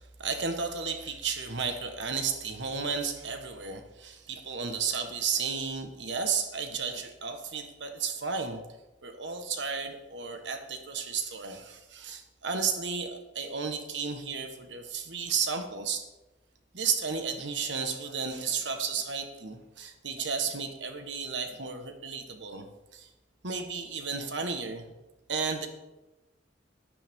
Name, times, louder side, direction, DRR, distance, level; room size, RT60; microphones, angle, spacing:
voice 1, 0.2-8.6 9.0-16.0 16.7-22.7 22.9-23.1 23.4-24.9 25.3-25.7, right 5 dB, 70° right, 6 dB, 1.4 m, -33 dB
11.5 x 10.5 x 3.7 m, 1.0 s
head